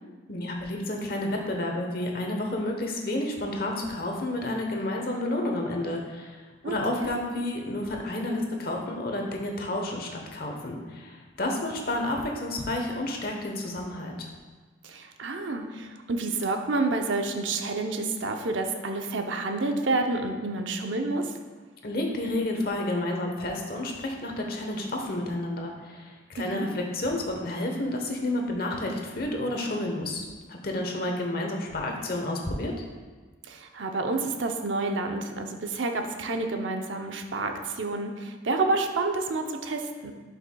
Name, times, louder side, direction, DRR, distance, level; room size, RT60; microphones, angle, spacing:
voice 1, 0.3-14.3 21.8-32.7, left 1 dB, 50° left, 1 dB, 1.0 m, -30 dB
voice 2, 6.6-7.1 14.8-21.3 26.4-26.7 33.4-40.1, right 3 dB, 80° right, 4 dB, 0.7 m, -29 dB
11.0 x 5.5 x 2.3 m, 1.4 s
head